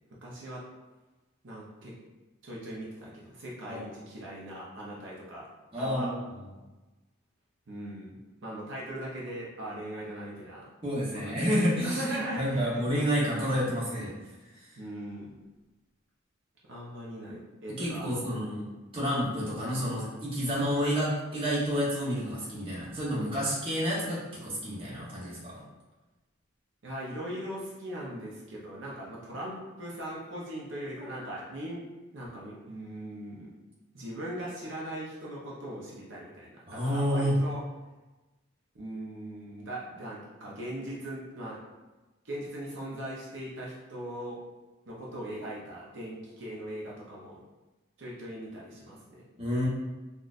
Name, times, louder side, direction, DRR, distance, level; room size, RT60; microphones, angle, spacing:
voice 1, 0.2-0.6 1.4-1.9 2.4-5.5 5.8-6.1 7.7-10.7 11.2-12.9 14.8-15.3 16.7-18.3 26.8-31.8 32.1-33.5 33.9-37.6 38.7-41.6 42.2-44.4 44.9-47.4 48.0-49.3, right 1 dB, 60° right, -5 dB, 0.7 m, -40 dB
voice 2, 5.7-6.5 10.8-14.1 14.5-14.6 17.8-18.6 18.9-25.6 36.7-37.4 49.4-49.7, equal, 25° right, -7 dB, 0.8 m, -29 dB
4.0 x 2.4 x 2.4 m, 1.1 s
head